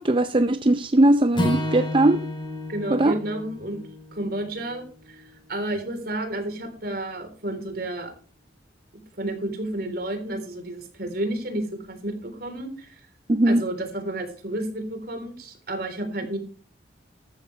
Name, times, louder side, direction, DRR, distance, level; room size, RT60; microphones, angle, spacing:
voice 1, 0.0-2.3 2.9-3.1 13.3-13.6, right 1 dB, 30° right, 0.5 m, -19 dB
Acoustic guitar / Strum, 1.3-5.6, left 1 dB, 25° left, 3.4 m, -32 dB
voice 2, 2.7-3.8 4.1-8.1 9.2-13.0 13.5-16.4, right 1 dB, 55° right, 3.7 m, -31 dB
14.0 x 12.5 x 3.3 m
head